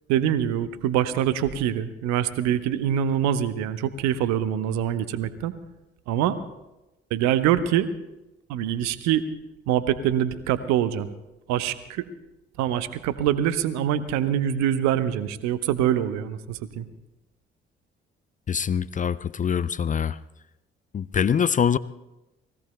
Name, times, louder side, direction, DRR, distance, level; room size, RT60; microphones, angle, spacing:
voice 1, 0.1-5.5 6.1-6.3 7.1-7.9 8.5-9.2 9.7-11.1 11.5-12.0 12.6-16.8, right 10 dB, 65° right, 14 dB, 0.9 m, -24 dB
voice 2, 18.5-20.2 20.9-21.8, left 7 dB, 25° left, 16 dB, 0.4 m, -24 dB
29.5 x 20.0 x 2.2 m, 0.98 s
figure-of-eight pair, 45°, 30 cm